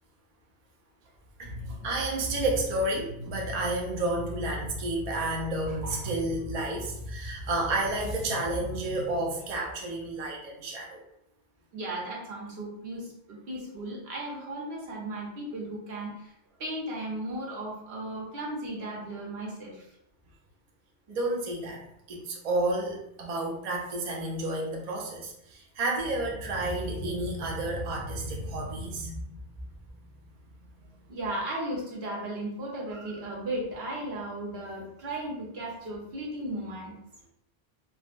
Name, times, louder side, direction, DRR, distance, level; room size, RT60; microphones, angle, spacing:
voice 1, 1.4-11.0 21.1-21.8 22.1-29.3, right 2 dB, 50° right, -1 dB, 0.5 m, -31 dB
voice 2, 11.7-16.1 16.6-19.7 31.1-36.9, right 1 dB, 65° right, -3 dB, 1.0 m, -35 dB
3.3 x 2.1 x 2.5 m, 0.79 s
omnidirectional pair, 1.2 m